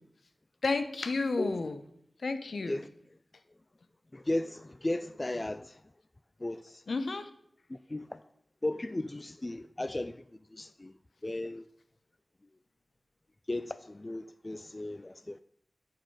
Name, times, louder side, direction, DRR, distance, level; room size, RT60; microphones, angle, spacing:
voice 1, 0.6-1.8 2.2-2.8 6.9-7.3, left 3 dB, 75° left, 0.8 m, -31 dB
voice 2, 4.1-5.8 6.4-6.8 7.7-8.2 8.6-10.2 10.5-10.9 11.2-11.7 13.5-15.4, left 1 dB, 30° left, 0.3 m, -35 dB
9.1 x 6.7 x 4.7 m
wide cardioid pair, 60°, 0 cm